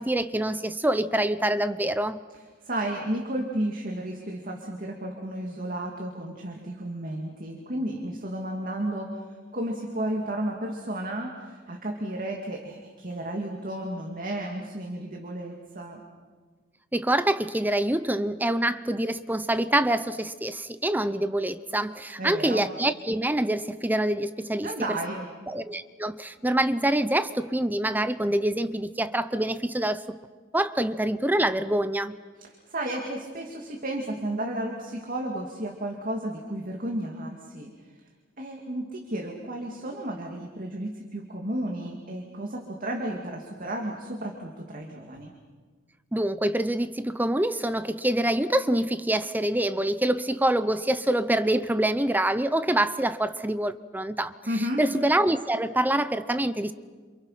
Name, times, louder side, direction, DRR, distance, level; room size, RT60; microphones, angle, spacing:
voice 1, 0.0-2.2 16.9-25.0 25.5-30.2 30.5-32.1 46.1-56.7, right 1 dB, 10° right, 13 dB, 0.7 m, -26 dB
voice 2, 2.6-9.3 9.5-16.0 22.2-22.7 24.6-25.3 32.4-37.7 38.4-45.3 54.5-54.9, right 1 dB, 40° right, 1 dB, 2.5 m, -33 dB
29.5 x 27.5 x 5.8 m, 1.5 s
head